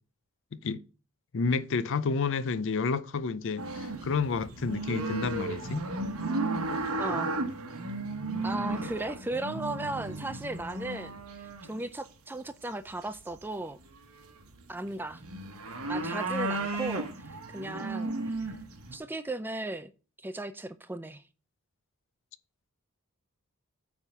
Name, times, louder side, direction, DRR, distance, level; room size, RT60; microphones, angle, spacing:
voice 1, 1.3-5.8, left 4 dB, 55° left, 0.5 m, -30 dB
sound 1, 3.6-11.8 12.9-13.4 13.8-19.0, right 2 dB, 70° right, 1.2 m, -34 dB
voice 2, 7.0-7.3 8.4-13.8 14.7-15.2 15.9-18.6 18.9-19.9 20.2-21.2, right 2 dB, 10° right, 0.3 m, -36 dB
9.1 x 3.6 x 5.5 m
head